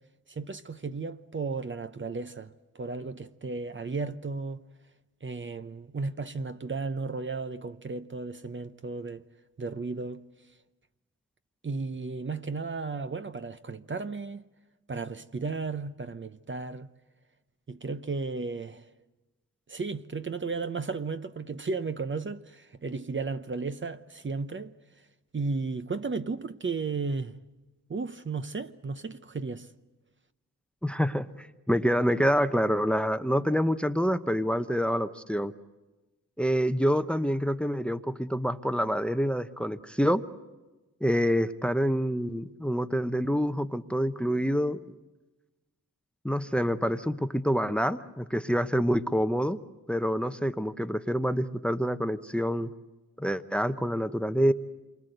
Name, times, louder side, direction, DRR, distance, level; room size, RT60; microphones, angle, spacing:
voice 1, 0.3-4.6 5.2-9.2 9.6-10.2 11.6-14.4 14.9-16.9 17.7-18.9 19.7-24.7 25.3-27.3 27.9-29.7, right 4 dB, 35° right, 0.9 m, -34 dB
voice 2, 30.8-35.5 36.4-40.2 41.0-44.8 46.2-49.6 49.9-52.7 53.2-54.5, equal, 5° left, 0.9 m, -27 dB
27.0 x 24.0 x 8.0 m
cardioid pair, 80°, 32 cm